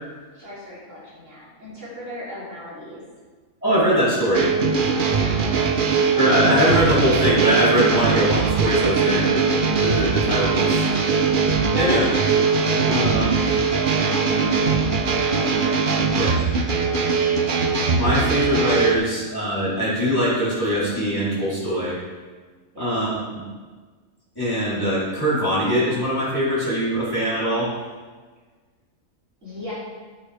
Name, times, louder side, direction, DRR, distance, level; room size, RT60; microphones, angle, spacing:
voice 1, 0.3-3.0 5.1-5.6 11.7-12.1 13.9-14.9 15.9-17.2 22.7-22.9 29.4-29.7, equal, 55° right, -8 dB, 3.8 m, -38 dB
voice 2, 3.6-4.5 6.1-9.4 9.8-10.9 11.7-12.1 12.8-13.4 16.1-16.3 17.9-22.0 22.8-23.4 24.4-27.7, equal, 15° left, -10 dB, 3.7 m, -22 dB
sound 1, 4.3-19.0, right 5 dB, 40° right, 0.9 m, -21 dB
12.0 x 9.4 x 3.5 m, 1.4 s
omnidirectional pair, 1.5 m